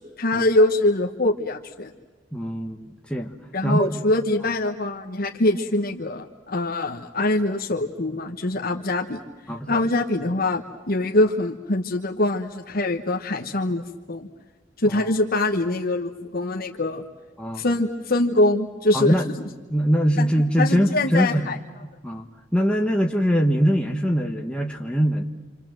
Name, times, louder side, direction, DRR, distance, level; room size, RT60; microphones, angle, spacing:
voice 1, 0.0-1.9 3.5-9.2 9.7-14.3 14.8-17.0 17.5-19.1 20.2-20.3 20.6-21.6, left 2 dB, 50° left, 2 dB, 1.2 m, -23 dB
voice 2, 2.3-3.4 3.6-4.0 9.5-9.8 14.8-15.0 17.4-17.6 18.9-19.3 19.7-21.5 22.0-22.3 22.5-25.2, equal, 5° left, 1 dB, 1.3 m, -22 dB
27.5 x 27.0 x 7.7 m, 1.3 s
head